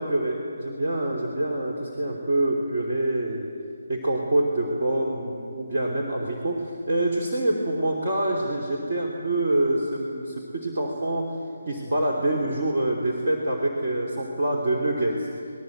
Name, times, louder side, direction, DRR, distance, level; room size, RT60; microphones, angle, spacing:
voice 1, 0.0-3.4 3.9-11.4 11.7-15.3, right 1 dB, 45° right, -2 dB, 3.1 m, -26 dB
27.0 x 21.0 x 8.0 m, 2.5 s
hypercardioid pair, 170°, 0 cm